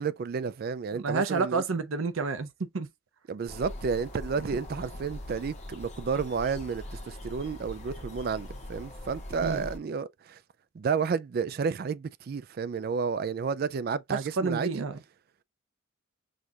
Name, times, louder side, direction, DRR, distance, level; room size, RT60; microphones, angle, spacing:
voice 1, 0.0-1.6 3.3-10.4 10.7-14.8, right 5 dB, 50° right, 0.3 m, -31 dB
voice 2, 0.9-2.9 4.4-4.6 9.4-9.7 14.1-15.0, right 4 dB, 85° right, 0.6 m, -30 dB
sound 1, 3.5-9.8, left 1 dB, 35° left, 1.2 m, -42 dB
6.3 x 2.4 x 2.8 m
head